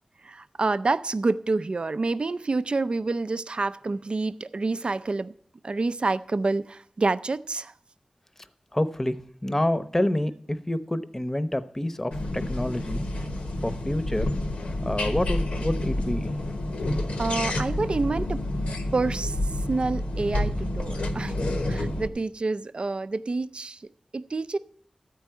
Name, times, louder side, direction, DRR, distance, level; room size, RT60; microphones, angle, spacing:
voice 1, 0.2-5.3 5.6-7.7 17.2-18.5 18.9-19.4 19.7-23.8 24.1-24.6, right 3 dB, 55° right, 0.4 m, -28 dB
voice 2, 8.7-13.1 13.6-14.3 14.8-16.3, left 1 dB, 20° left, 0.8 m, -28 dB
sound 1, 12.1-22.1, left 1 dB, 90° left, 1.1 m, -29 dB
13.5 x 4.6 x 8.8 m
wide cardioid pair, 50°, 2 cm